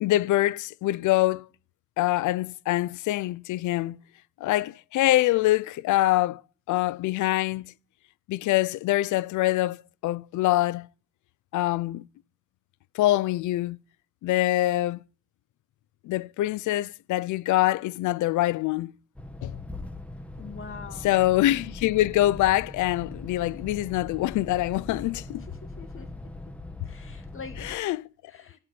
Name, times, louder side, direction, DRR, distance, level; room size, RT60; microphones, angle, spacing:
voice 1, 0.0-1.5 2.0-4.0 4.4-6.4 6.7-7.7 8.3-10.9 11.5-12.0 12.9-13.8 14.2-15.0 16.0-18.9 19.4-19.5 21.0-25.4 27.6-28.0, left 16 dB, 75° left, 0.5 m, -24 dB
sound 1, 19.2-27.8, left 2 dB, 5° left, 1.4 m, -41 dB
voice 2, 20.4-21.2 25.4-26.6 26.8-28.6, left 5 dB, 45° left, 2.2 m, -45 dB
13.0 x 5.8 x 9.4 m
cardioid pair, 90°, 30 cm